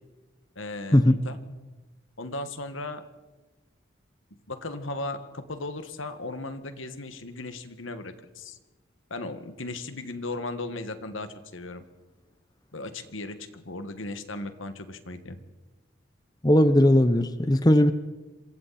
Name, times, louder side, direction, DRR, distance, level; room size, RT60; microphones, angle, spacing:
voice 1, 0.6-1.4 2.2-3.0 4.5-8.6 9.1-11.8 12.7-15.4, left 2 dB, 80° left, 9 dB, 1.9 m, -36 dB
voice 2, 16.4-17.9, left 1 dB, 20° left, 11 dB, 0.8 m, -18 dB
27.0 x 23.5 x 4.3 m, 1.2 s
head